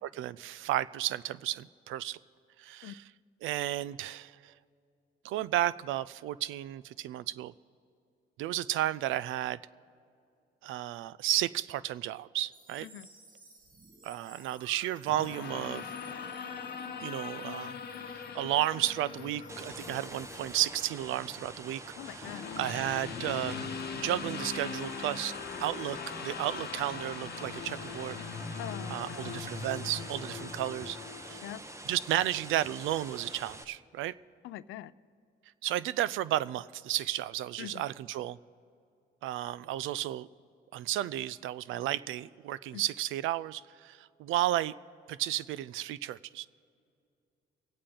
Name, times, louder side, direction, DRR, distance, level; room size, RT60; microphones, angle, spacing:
voice 1, 0.0-2.2 2.6-3.1 3.4-4.5 5.2-7.5 8.4-9.6 10.6-12.9 14.0-15.9 17.0-17.8 18.1-23.7 24.0-25.3 25.6-28.2 28.9-31.0 31.2-31.4 31.8-34.2 35.6-38.4 39.2-40.3 40.7-44.7 45.1-46.5, right 13 dB, 85° right, 19 dB, 0.4 m, -33 dB
sound 1, 12.5-20.6, right 2 dB, 45° right, 1.8 m, -57 dB
sound 2, 15.0-31.4, left 6 dB, 55° left, 1.0 m, -41 dB
sound 3, 19.5-33.6, right 1 dB, 15° right, 0.9 m, -46 dB
voice 2, 22.0-22.5 28.6-29.5 31.4-31.6 34.4-34.9 37.6-37.8 42.7-42.8, left 13 dB, 90° left, 18 dB, 0.4 m, -43 dB
24.0 x 8.7 x 3.7 m, 2.5 s
cardioid pair, 90°, 20 cm